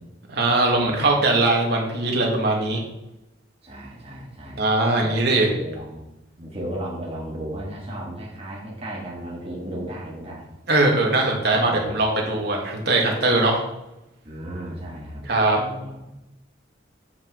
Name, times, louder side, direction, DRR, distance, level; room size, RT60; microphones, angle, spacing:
voice 1, 0.3-2.8 4.6-5.6 10.7-13.6 15.2-15.6, right 2 dB, 55° right, -1 dB, 2.1 m, -21 dB
voice 2, 3.6-4.6 4.9-5.2 5.4-6.0 6.4-10.5 11.5-11.9 14.2-15.3 15.5-16.2, right 1 dB, 30° right, -5 dB, 1.6 m, -35 dB
8.7 x 6.1 x 4.7 m, 0.91 s
head